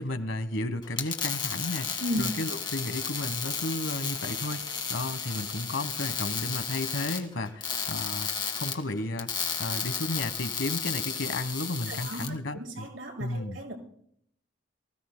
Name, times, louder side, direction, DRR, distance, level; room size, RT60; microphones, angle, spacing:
voice 1, 0.0-8.3 8.5-9.3 9.6-12.9 13.2-13.6, left 2 dB, 80° left, 11 dB, 1.2 m, -33 dB
sound 1, 0.8-12.3, left 6 dB, 25° left, 1.6 m, -33 dB
voice 2, 11.9-13.7, equal, 80° right, 0 dB, 5.6 m, -35 dB
24.5 x 15.5 x 2.2 m, 0.67 s
head